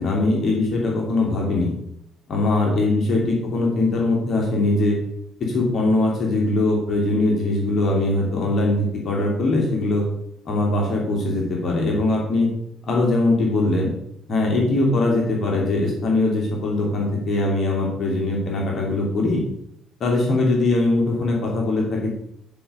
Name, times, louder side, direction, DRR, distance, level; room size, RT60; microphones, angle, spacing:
voice 1, 0.0-1.7 2.3-5.0 5.4-10.0 10.5-12.5 12.9-13.9 14.3-19.4 20.0-22.1, left 2 dB, 50° left, -2 dB, 2.7 m, -21 dB
9.8 x 5.5 x 5.0 m, 0.77 s
hypercardioid pair, 50°, 0 cm